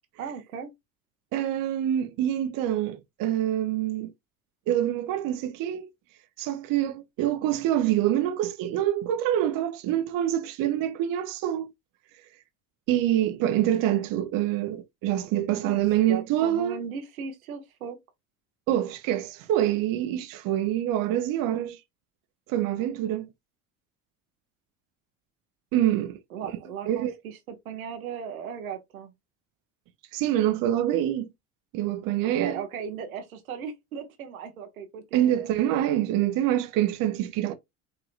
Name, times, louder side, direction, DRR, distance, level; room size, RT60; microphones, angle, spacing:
voice 1, 0.2-0.7 15.6-18.0 26.3-29.1 32.2-35.5, right 7 dB, 90° right, 1.0 m, -37 dB
voice 2, 1.3-4.1 4.7-5.9 6.4-11.7 12.9-16.7 18.7-21.8 22.5-23.3 25.7-26.2 26.9-27.1 30.1-31.3 31.7-32.6 35.1-37.5, right 12 dB, 55° right, 0.7 m, -26 dB
4.9 x 2.9 x 2.4 m
hypercardioid pair, 70°, 42 cm